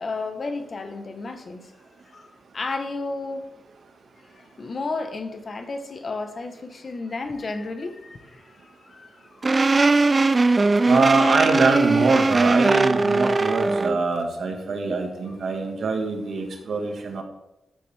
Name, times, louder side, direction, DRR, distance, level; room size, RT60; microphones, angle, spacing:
voice 1, 0.0-1.7 2.1-2.3 2.5-3.5 4.2-10.2, left 3 dB, 45° left, 7 dB, 1.2 m, -33 dB
sound 1, 9.4-14.0, right 3 dB, 30° right, 0.4 m, -20 dB
voice 2, 10.9-17.2, right 4 dB, 70° right, 3 dB, 1.7 m, -23 dB
13.0 x 7.6 x 3.5 m, 0.94 s
wide cardioid pair, 100°, 0 cm